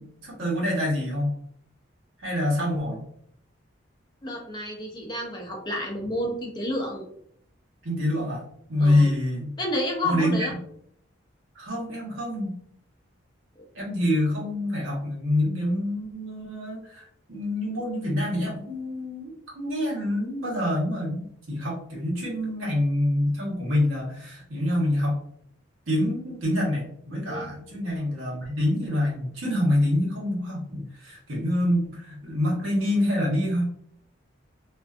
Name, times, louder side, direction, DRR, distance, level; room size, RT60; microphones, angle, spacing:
voice 1, 0.0-1.4 2.2-3.0 7.8-8.4 8.7-9.5 10.0-10.5 11.5-12.5 13.7-25.2 25.9-33.6, left 1 dB, 85° right, -3 dB, 1.0 m, -26 dB
voice 2, 4.2-7.0 8.8-9.1 9.6-10.5 27.3-27.5, left 1 dB, 20° left, 0 dB, 0.4 m, -30 dB
2.5 x 2.3 x 2.4 m, 0.67 s
head